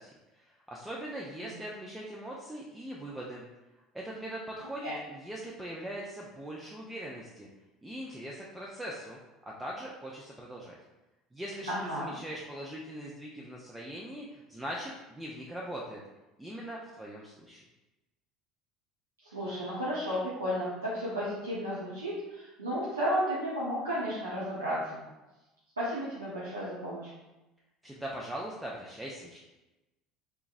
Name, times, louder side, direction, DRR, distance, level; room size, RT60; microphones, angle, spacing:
voice 1, 0.0-3.5 3.9-7.5 7.8-10.8 11.3-16.0 16.4-17.6 27.8-29.4, right 1 dB, 10° right, -3 dB, 0.5 m, -41 dB
voice 2, 11.7-12.1 19.3-25.0 25.8-27.1, equal, 85° right, -9 dB, 0.7 m, -33 dB
3.5 x 2.9 x 2.5 m, 1.0 s
figure-of-eight pair, 65°, 0 cm